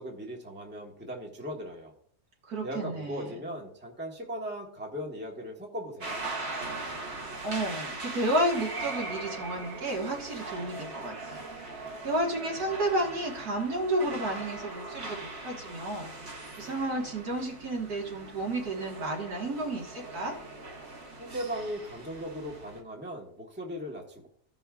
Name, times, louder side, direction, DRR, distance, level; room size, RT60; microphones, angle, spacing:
voice 1, 0.0-1.9 2.6-6.3 21.2-24.3, equal, 10° right, 0 dB, 1.1 m, -38 dB
voice 2, 2.5-3.3 7.1-11.4 12.0-20.4, right 1 dB, 70° right, -1 dB, 2.1 m, -32 dB
sound 1, 6.0-22.8, right 2 dB, 45° right, 1.5 m, -40 dB
15.5 x 5.5 x 2.4 m, 0.63 s
omnidirectional pair, 1.7 m